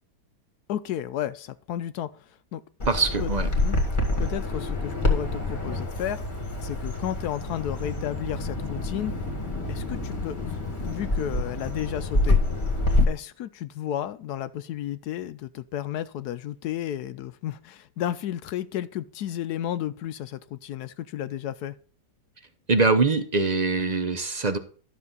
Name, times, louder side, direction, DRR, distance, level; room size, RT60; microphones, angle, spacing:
voice 1, 0.7-2.1 2.5-2.6 3.2-3.3 3.6-3.8 4.2-6.2 6.6-9.1 9.7-12.4 13.1-21.7, left 11 dB, 75° left, 13 dB, 1.1 m, -32 dB
Bird vocalization bird call bird song, 2.8-13.0, left 2 dB, 30° left, 1.9 m, -27 dB
voice 2, 2.9-3.5 22.7-24.6, right 4 dB, 45° right, 10 dB, 0.6 m, -23 dB
12.0 x 6.5 x 3.8 m, 0.43 s
omnidirectional pair, 1.8 m